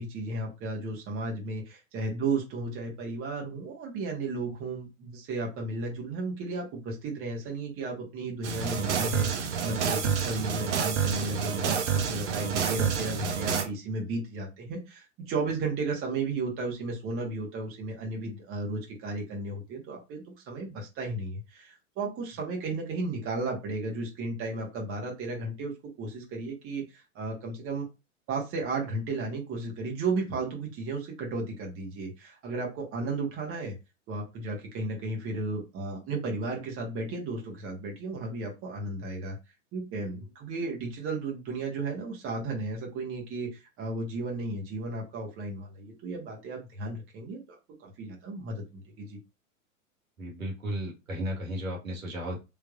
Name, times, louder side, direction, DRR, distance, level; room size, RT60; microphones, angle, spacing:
voice 1, 0.0-25.7 26.0-27.9 28.3-33.7 34.1-39.4 39.7-49.2, right 3 dB, 35° right, -1 dB, 1.5 m, -34 dB
sound 1, 8.4-13.6, right 7 dB, 60° right, 1.0 m, -28 dB
voice 2, 50.2-52.4, equal, 80° right, -1 dB, 1.6 m, -34 dB
3.4 x 3.3 x 2.5 m, 0.26 s
figure-of-eight pair, 95°, 40 cm